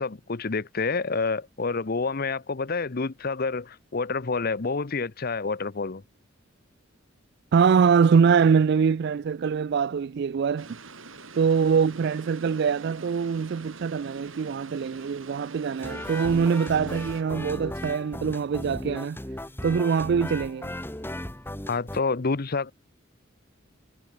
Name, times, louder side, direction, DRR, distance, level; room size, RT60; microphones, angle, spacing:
voice 1, 0.0-6.0 21.7-22.7, left 4 dB, 50° left, 0.8 m, -28 dB
voice 2, 7.5-10.7 11.4-19.2 19.6-20.7, right 6 dB, 55° right, 0.3 m, -23 dB
sound 1, 10.6-17.2, right 3 dB, 80° right, 7.9 m, -45 dB
sound 2, 15.8-22.0, left 1 dB, 10° left, 2.0 m, -36 dB
head